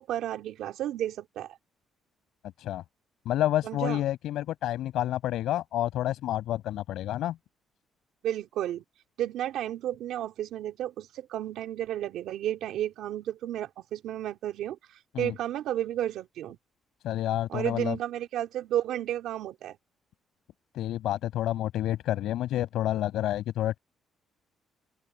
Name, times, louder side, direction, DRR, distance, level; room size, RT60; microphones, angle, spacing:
voice 1, 0.0-1.6 3.6-4.0 8.2-8.8 9.2-14.8 15.2-16.6 17.5-19.8, right 12 dB, 80° right, 3.1 m, -32 dB
voice 2, 3.2-7.4 15.1-15.3 17.0-18.0 20.7-23.8, left 13 dB, 80° left, 6.4 m, -29 dB
cardioid pair, 150°, 0 cm